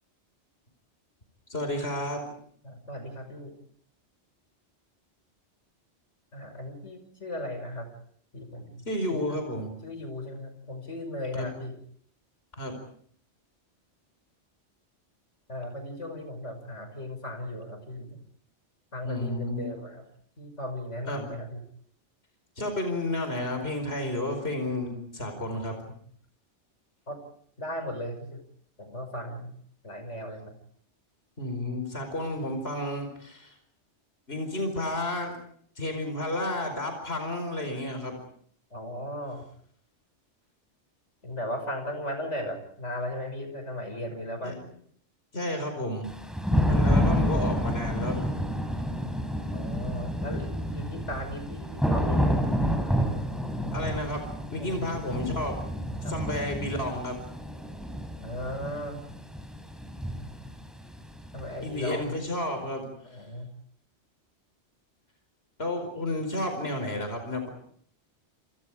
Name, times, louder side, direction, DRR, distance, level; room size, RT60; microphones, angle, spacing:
voice 1, 1.5-2.2 8.9-9.7 11.4-11.5 12.6-12.8 19.0-19.7 21.1-21.3 22.6-25.8 31.4-33.5 34.3-35.4 35.8-38.2 44.4-44.6 45.3-46.1 46.7-48.3 53.7-54.2 54.5-55.6 56.0-57.2 61.6-63.2 65.6-67.5, left 1 dB, 60° left, 6 dB, 5.1 m, -31 dB
voice 2, 2.6-3.5 6.3-7.9 8.3-9.4 9.8-11.7 15.5-18.2 18.9-20.0 20.4-21.6 27.1-27.2 27.6-28.4 28.8-29.5 29.8-30.5 38.7-39.4 41.2-44.6 49.5-52.5 54.6-54.9 56.0-56.2 58.2-59.0 61.3-62.2 63.0-63.5, left 1 dB, 80° left, 6 dB, 6.2 m, -36 dB
Thunder / Rain, 46.0-61.8, equal, ahead, 4.2 m, -29 dB
28.5 x 28.5 x 4.9 m, 0.63 s
omnidirectional pair, 1.2 m